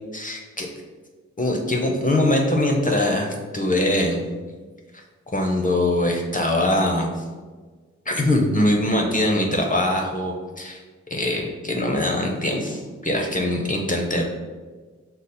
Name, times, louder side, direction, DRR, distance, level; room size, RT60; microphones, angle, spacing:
voice 1, 0.1-0.7 1.4-4.2 4.9-5.0 5.3-7.2 8.1-10.8 11.1-14.2, left 1 dB, 30° left, 1 dB, 0.6 m, -22 dB
5.1 x 2.0 x 4.1 m, 1.4 s
cardioid pair, 50°, 29 cm